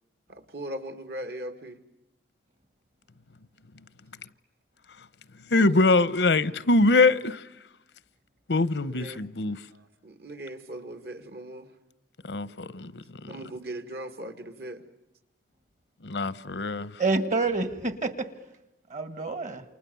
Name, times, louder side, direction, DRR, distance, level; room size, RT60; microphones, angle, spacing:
voice 1, 0.3-1.8 8.9-9.2 9.7-11.7 13.3-14.8, right 1 dB, 65° right, 2.3 m, -39 dB
voice 2, 5.5-7.4 8.5-9.6 12.3-12.9 13.2-13.3 16.0-16.9, left 3 dB, 85° left, 0.9 m, -23 dB
voice 3, 17.0-18.3 18.9-19.6, right 3 dB, 45° right, 1.7 m, -27 dB
29.0 x 28.5 x 7.0 m
head